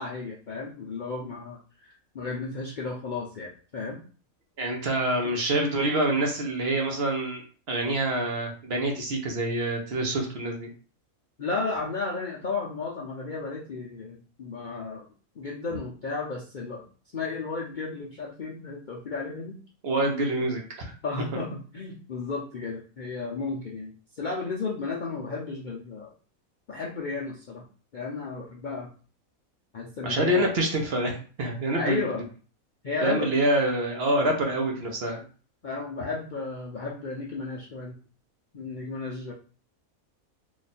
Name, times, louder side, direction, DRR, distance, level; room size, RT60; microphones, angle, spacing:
voice 1, 0.0-4.0 11.4-15.1 15.4-16.8 17.1-19.6 20.4-20.5 21.0-26.1 26.7-27.6 27.9-28.9 29.7-30.7 31.7-32.3 32.8-33.3 34.2-34.4 35.6-38.0 38.5-39.3, left 4 dB, 60° left, -3 dB, 0.5 m, -33 dB
voice 2, 4.6-7.4 7.7-10.7 19.8-20.9 30.0-32.0 33.0-35.2, right 1 dB, 50° right, 1 dB, 0.9 m, -26 dB
3.0 x 2.5 x 4.1 m, 0.39 s
omnidirectional pair, 1.5 m